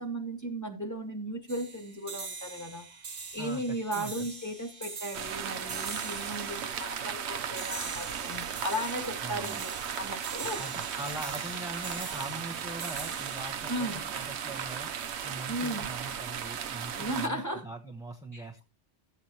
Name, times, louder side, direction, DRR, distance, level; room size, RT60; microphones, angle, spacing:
voice 1, 0.0-3.0 3.3-9.7 10.0-10.6 13.7-14.0 15.5-15.9 16.9-17.7 18.3-18.4, right 1 dB, 15° left, 3 dB, 2.0 m, -36 dB
sound 1, 1.5-14.9, right 4 dB, 40° right, 1.4 m, -44 dB
voice 2, 3.9-4.3 9.2-9.6 10.6-14.9 15.2-18.6, right 1 dB, 5° right, 1 dB, 0.9 m, -42 dB
sound 2, 5.1-17.3, right 8 dB, 70° right, 1.0 m, -36 dB
14.0 x 8.1 x 2.9 m, 0.29 s
omnidirectional pair, 1.2 m